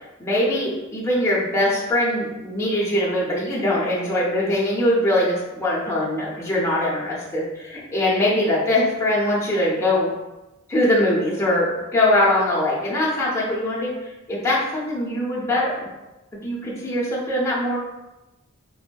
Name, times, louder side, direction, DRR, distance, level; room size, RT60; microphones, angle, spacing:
voice 1, 0.2-10.1 10.7-13.9 14.3-15.9 16.4-17.8, left 1 dB, 15° left, -7 dB, 0.6 m, -22 dB
3.4 x 2.1 x 2.2 m, 1.0 s
head